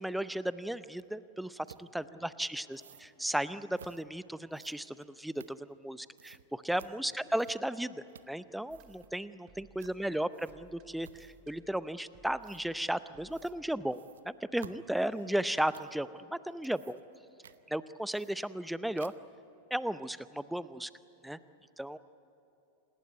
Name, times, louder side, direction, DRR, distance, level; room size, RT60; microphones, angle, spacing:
voice 1, 0.0-2.8 3.2-17.0 17.7-19.1 19.7-20.9 21.2-21.4 21.8-22.0, right 1 dB, ahead, 16 dB, 0.6 m, -35 dB
sound 1, 1.0-1.1 1.7-1.9 2.7-3.1 3.7-4.0 4.5-5.9 6.2-6.4 6.8-6.9 7.3-7.8 8.1-8.4 8.6-9.1 9.8-10.0 10.3-10.7 11.0-11.5 12.4-12.6 13.3-13.6 13.9-16.0 16.5-17.2 17.4-17.6 18.1-18.7 19.0-19.4, right 8 dB, 65° right, 0.8 m, -55 dB
voice 2, 2.0-3.2 6.9-7.3 9.8-10.4 15.1-15.3, left 2 dB, 45° left, -6 dB, 7.7 m, -62 dB
sound 2, 8.7-13.8, right 4 dB, 35° right, 2.2 m, -62 dB
27.5 x 19.5 x 9.5 m, 2.9 s
figure-of-eight pair, 90°, 0 cm